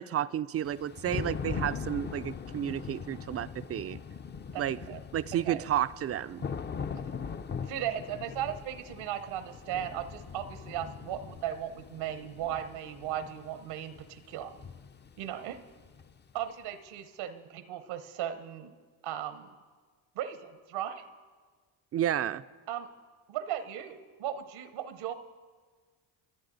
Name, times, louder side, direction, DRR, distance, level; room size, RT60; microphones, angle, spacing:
voice 1, 0.0-4.0 4.6-4.8 5.1-6.5 21.9-22.4, right 11 dB, 35° right, 15 dB, 0.4 m, -31 dB
Thunder / Rain, 0.6-16.4, left 6 dB, 25° left, 0.4 m, -41 dB
voice 2, 4.5-5.0 5.4-5.7 7.6-14.5 15.2-15.6 16.3-18.7 19.0-19.5 20.1-21.0 22.7-22.9 23.3-25.1, right 10 dB, 80° right, 11 dB, 1.0 m, -37 dB
25.5 x 8.9 x 3.9 m, 1.5 s
supercardioid pair, 70°, 47 cm